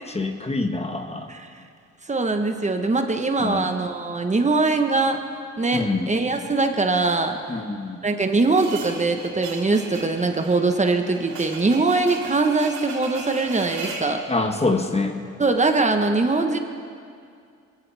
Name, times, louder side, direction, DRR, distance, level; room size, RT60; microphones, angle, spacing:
voice 1, 0.1-1.3 3.4-3.6 5.7-6.1 7.5-8.0 14.3-15.2, left 3 dB, 20° left, 5 dB, 1.3 m, -25 dB
voice 2, 2.0-5.2 5.6-7.4 8.0-14.2 15.4-16.6, right 3 dB, 25° right, 5 dB, 1.2 m, -22 dB
sound 1, 8.6-14.1, right 4 dB, 85° right, 4.2 m, -37 dB
22.5 x 16.0 x 3.5 m, 2.3 s
cardioid pair, 90°, 30 cm